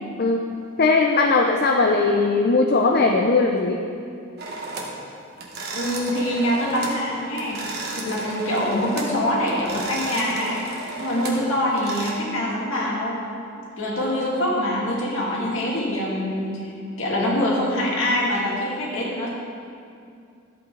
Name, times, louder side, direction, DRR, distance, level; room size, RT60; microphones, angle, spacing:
voice 1, 0.8-3.8 8.0-8.1, left 3 dB, 50° left, 2 dB, 0.6 m, -19 dB
sound 1, 4.4-5.0 5.4-7.0 7.3-9.2 9.5-12.1, right 2 dB, 50° right, 1.5 m, -33 dB
voice 2, 5.7-7.6 8.0-10.6 11.0-13.2 13.8-16.7 17.0-19.3, left 1 dB, 70° left, -4 dB, 2.4 m, -24 dB
13.5 x 8.4 x 3.9 m, 2.5 s
head